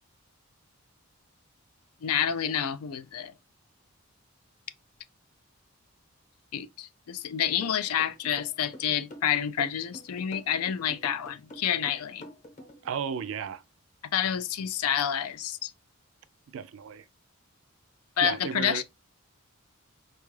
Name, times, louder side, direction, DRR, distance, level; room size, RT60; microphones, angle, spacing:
voice 1, 2.0-3.3 6.5-12.3 14.1-15.7 18.2-18.8, left 9 dB, 80° left, 0.4 m, -29 dB
sound 1, 7.6-12.9, left 1 dB, 30° left, 0.8 m, -46 dB
voice 2, 12.8-13.6 16.5-17.0 18.2-18.8, right 7 dB, 60° right, 0.3 m, -34 dB
4.4 x 2.4 x 3.1 m
head